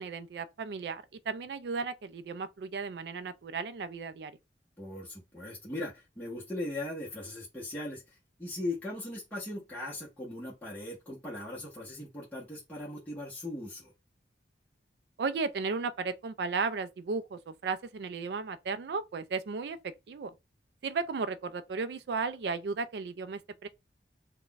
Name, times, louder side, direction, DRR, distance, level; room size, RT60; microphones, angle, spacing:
voice 1, 0.0-4.3 15.2-20.3 20.8-23.7, right 4 dB, 65° right, 0.4 m, -35 dB
voice 2, 4.8-13.9, left 1 dB, 10° left, 0.9 m, -39 dB
2.4 x 2.2 x 3.8 m
head